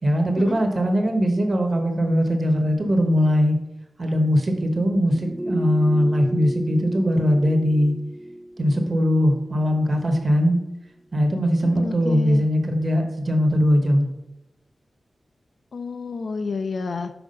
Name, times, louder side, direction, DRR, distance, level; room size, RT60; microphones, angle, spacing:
voice 1, 0.0-3.6 4.0-7.9 8.6-10.6 11.1-14.1, equal, 40° right, 4 dB, 1.3 m, -20 dB
sound 1, 5.0-10.2 10.5-10.6, right 1 dB, 10° right, 0.7 m, -33 dB
voice 2, 11.6-12.5 15.7-17.1, left 4 dB, 65° left, 7 dB, 0.5 m, -30 dB
5.9 x 4.9 x 5.4 m, 0.95 s
wide cardioid pair, 115°, 0 cm